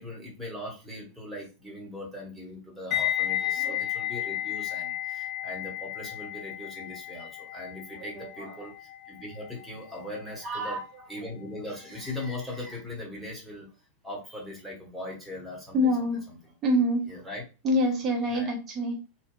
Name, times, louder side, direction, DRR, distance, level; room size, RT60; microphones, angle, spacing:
voice 1, 0.0-10.8 11.1-13.7 14.0-16.1 17.1-17.4 18.3-18.5, left 1 dB, 5° right, -3 dB, 1.1 m, -40 dB
sound 1, 2.9-11.9 12.1-12.4, left 12 dB, 35° left, 1.1 m, -34 dB
voice 2, 7.9-8.7 10.4-10.8 15.7-16.3 16.6-17.1 17.6-19.0, equal, 30° right, 0 dB, 0.8 m, -27 dB
2.7 x 2.2 x 2.3 m, 0.31 s
figure-of-eight pair, 90°, 0 cm